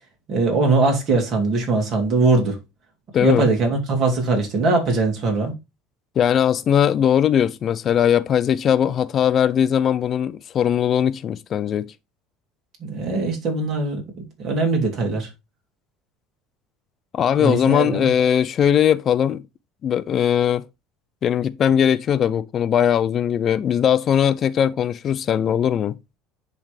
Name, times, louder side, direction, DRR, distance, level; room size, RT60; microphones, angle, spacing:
voice 1, 0.3-2.6 3.2-5.5 12.8-15.3 17.4-18.1, right 3 dB, 45° right, 2.6 m, -21 dB
voice 2, 3.1-3.5 6.2-11.9 17.1-19.4 19.8-20.6 21.2-26.0, left 9 dB, 35° left, 0.4 m, -19 dB
10.5 x 3.5 x 3.3 m
cardioid pair, 140°, 0 cm